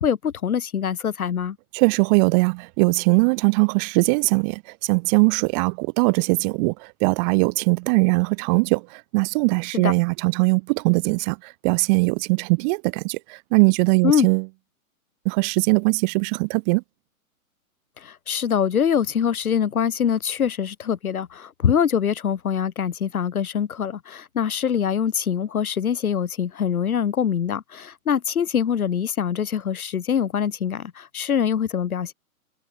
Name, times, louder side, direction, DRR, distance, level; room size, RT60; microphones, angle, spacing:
voice 1, 0.0-1.6 9.7-9.9 14.0-14.3 18.0-32.1, left 8 dB, 75° left, 2.6 m, -24 dB
voice 2, 1.7-14.5 15.2-16.8, right 32 dB, 30° right, 1.6 m, -21 dB
hypercardioid pair, 135°, 43 cm